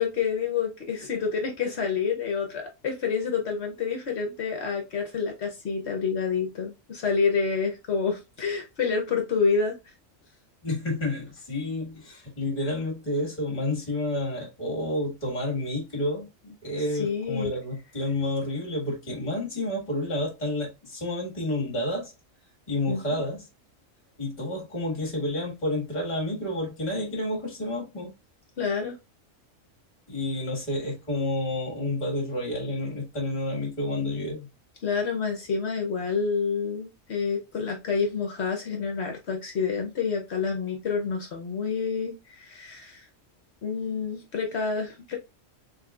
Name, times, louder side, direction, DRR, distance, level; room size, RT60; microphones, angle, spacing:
voice 1, 0.0-9.8 17.0-17.5 22.9-23.2 28.6-29.0 34.8-43.1 43.6-45.2, left 5 dB, 60° left, 1.0 m, -28 dB
voice 2, 10.6-22.1 22.7-23.5 24.2-28.1 30.1-34.5, left 1 dB, 35° left, 1.7 m, -30 dB
4.1 x 3.6 x 2.3 m
omnidirectional pair, 1.4 m